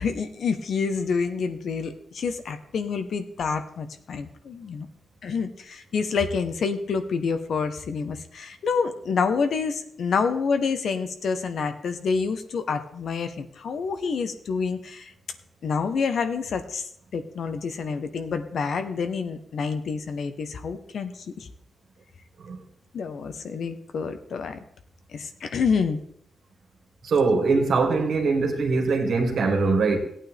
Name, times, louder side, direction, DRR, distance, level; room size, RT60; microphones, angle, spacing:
voice 1, 0.0-4.9 5.2-15.1 15.6-21.5 22.9-24.6 25.1-26.0, left 5 dB, 70° left, 1.1 m, -28 dB
voice 2, 27.0-30.0, right 4 dB, 70° right, 2.3 m, -22 dB
16.5 x 8.9 x 3.5 m
wide cardioid pair, 115°, 0 cm